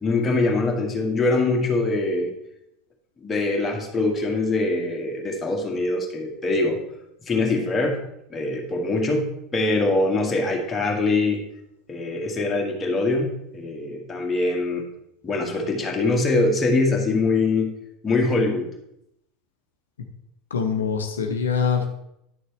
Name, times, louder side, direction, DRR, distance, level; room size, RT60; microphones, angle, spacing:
voice 1, 0.0-2.3 3.2-6.8 7.3-8.0 8.3-11.4 11.9-14.8 15.2-17.7 18.0-18.7, left 2 dB, 20° left, 0 dB, 1.8 m, -23 dB
voice 2, 20.5-21.9, left 6 dB, 80° left, 5 dB, 0.8 m, -24 dB
10.0 x 6.5 x 3.3 m, 0.79 s
figure-of-eight pair, 75°, 0 cm